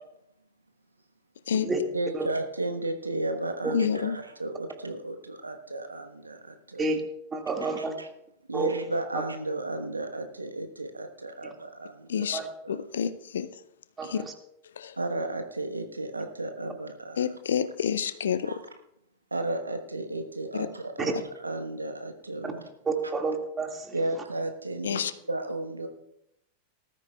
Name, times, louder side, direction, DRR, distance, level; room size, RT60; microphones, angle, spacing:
voice 1, 1.9-6.9 7.8-8.1 8.5-12.3 12.6-12.8 15.0-17.3 18.4-18.6 19.3-21.1 21.4-22.6 23.9-25.9, right 2 dB, 80° right, 6 dB, 1.2 m, -33 dB
voice 2, 3.7-4.2 12.1-12.4 12.7-13.6 14.0-14.2 14.8-15.0 17.2-18.6 20.5-20.7 24.8-25.1, left 8 dB, 65° left, 14 dB, 0.6 m, -28 dB
voice 3, 7.3-7.9 8.5-8.7 11.4-11.5 12.3-12.5 14.0-14.3 21.0-21.1 22.4-22.5 22.9-24.0, right 3 dB, 15° right, 3 dB, 2.1 m, -30 dB
19.5 x 13.0 x 2.4 m, 0.80 s
figure-of-eight pair, 90°, 0 cm